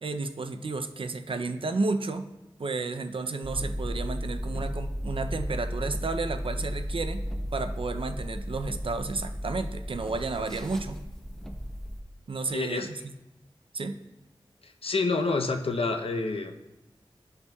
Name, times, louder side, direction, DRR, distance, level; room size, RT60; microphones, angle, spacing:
voice 1, 0.0-2.3 2.6-7.2 7.5-11.0 12.3-13.0 13.7-14.0, right 3 dB, 65° right, 8 dB, 0.5 m, -32 dB
sound 1, 3.4-12.0, equal, 5° left, 0.8 m, -34 dB
voice 2, 12.5-12.9 14.6-16.5, left 3 dB, 80° left, 5 dB, 0.7 m, -28 dB
13.5 x 5.5 x 2.3 m, 0.97 s
wide cardioid pair, 80°, 10 cm